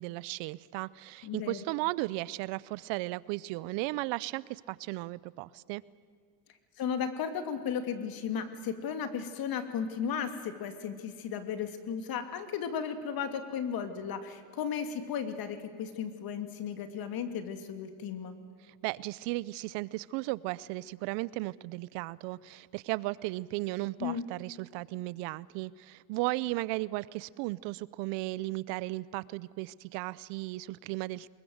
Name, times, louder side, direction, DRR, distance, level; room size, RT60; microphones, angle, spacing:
voice 1, 0.0-5.8 18.8-31.3, right 20 dB, 65° right, 21 dB, 0.7 m, -35 dB
voice 2, 1.2-1.6 6.8-18.3 24.0-24.2, left 7 dB, 45° left, 8 dB, 2.7 m, -35 dB
24.0 x 22.0 x 7.9 m, 2.1 s
supercardioid pair, 120°, 47 cm